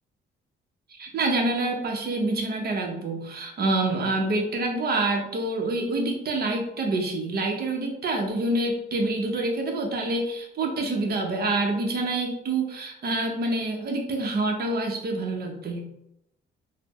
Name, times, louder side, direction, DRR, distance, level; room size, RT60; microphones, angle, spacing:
voice 1, 0.9-15.9, right 2 dB, 50° right, 2 dB, 0.8 m, -27 dB
3.9 x 2.1 x 3.0 m, 0.82 s
cardioid pair, 90°, 20 cm